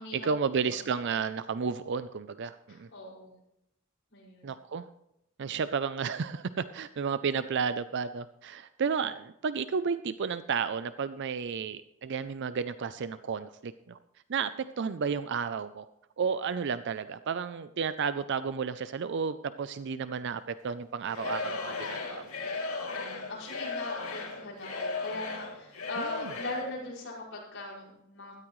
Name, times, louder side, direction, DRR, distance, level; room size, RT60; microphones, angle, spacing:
voice 1, 0.1-2.9 4.4-4.9 5.4-14.0 14.3-15.9 16.2-22.2 26.0-26.3, right 6 dB, 55° right, 13 dB, 0.4 m, -32 dB
voice 2, 2.7-3.3 4.1-4.5 23.0-28.3, left 2 dB, 55° left, -4 dB, 5.7 m, -40 dB
Singing / Crowd, 21.1-26.7, left 3 dB, 80° left, 2.8 m, -36 dB
16.5 x 13.5 x 3.1 m, 0.81 s
head